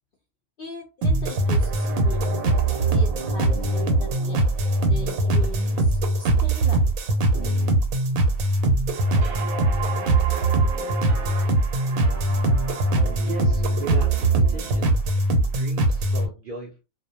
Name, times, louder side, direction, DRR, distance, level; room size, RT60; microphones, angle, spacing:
voice 1, 0.6-2.4 2.9-4.4 4.9-6.9, left 3 dB, 70° left, 0 dB, 0.5 m, -39 dB
sound 1, 1.0-16.3, right 2 dB, 85° right, 1.0 m, -21 dB
sound 2, 7.3-7.7 9.2-9.5 11.1-11.4 12.0-14.8, right 3 dB, 45° right, 0.8 m, -38 dB
voice 2, 13.2-14.9 15.5-16.8, right 3 dB, 70° right, -1 dB, 0.5 m, -36 dB
2.5 x 2.0 x 2.7 m, 0.29 s
omnidirectional pair, 1.4 m